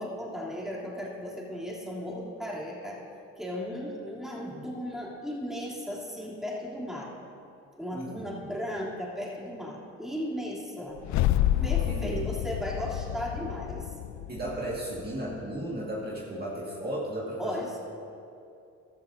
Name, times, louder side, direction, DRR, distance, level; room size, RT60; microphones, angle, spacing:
voice 1, 0.0-3.0 3.4-7.1 7.7-11.0 11.6-13.9 17.4-17.8, equal, ahead, -5 dB, 3.0 m, -36 dB
voice 2, 7.9-8.4 11.5-12.3 14.3-17.6, right 1 dB, 30° right, -5 dB, 1.8 m, -35 dB
sound 1, 11.0-15.3, left 13 dB, 70° left, 0.4 m, -29 dB
15.0 x 13.0 x 2.7 m, 2.7 s
cardioid pair, 90°, 30 cm